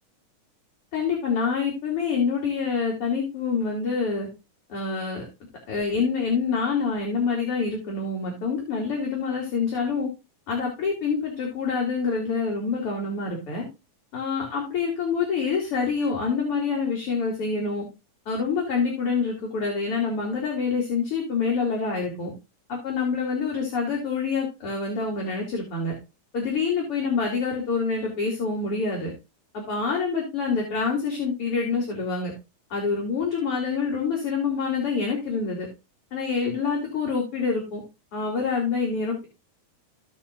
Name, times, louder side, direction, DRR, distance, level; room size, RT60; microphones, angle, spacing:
voice 1, 0.9-4.3 4.7-5.3 5.7-10.1 10.5-13.7 14.1-17.8 18.3-22.3 22.7-25.9 26.3-29.1 29.5-32.3 32.7-35.7 36.1-37.8 38.1-39.3, left 5 dB, 45° left, -1 dB, 3.6 m, -26 dB
16.5 x 5.7 x 2.4 m, 0.27 s
omnidirectional pair, 3.7 m